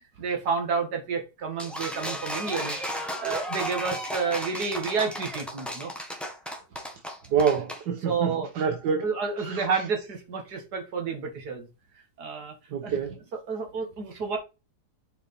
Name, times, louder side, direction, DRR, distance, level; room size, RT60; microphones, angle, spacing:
voice 1, 0.2-5.9 8.0-8.5 9.0-11.7 12.2-12.6 12.8-13.0 13.3-14.4, right 5 dB, 65° right, 2.1 m, -30 dB
sound 1, 1.6-7.8, equal, ahead, 1.1 m, -34 dB
voice 2, 7.3-9.0 9.4-9.6 12.7-13.1, right 6 dB, 80° right, 1.5 m, -26 dB
6.6 x 4.8 x 4.2 m
omnidirectional pair, 1.8 m